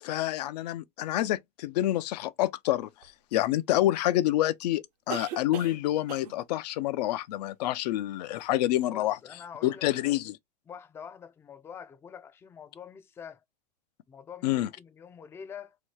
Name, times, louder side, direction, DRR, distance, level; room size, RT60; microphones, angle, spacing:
voice 1, 0.0-2.9 3.3-9.2 9.6-10.4 14.4-14.7, left 15 dB, 80° left, 0.5 m, -27 dB
sound 1, 3.0-3.1 5.1-5.8 6.1-6.4 8.4-8.5 8.7-8.8, right 8 dB, 80° right, 0.8 m, -39 dB
voice 2, 8.9-9.9 10.7-13.4 14.1-15.8, left 7 dB, 10° left, 0.3 m, -45 dB
2.9 x 2.3 x 3.1 m
supercardioid pair, 130°, 21 cm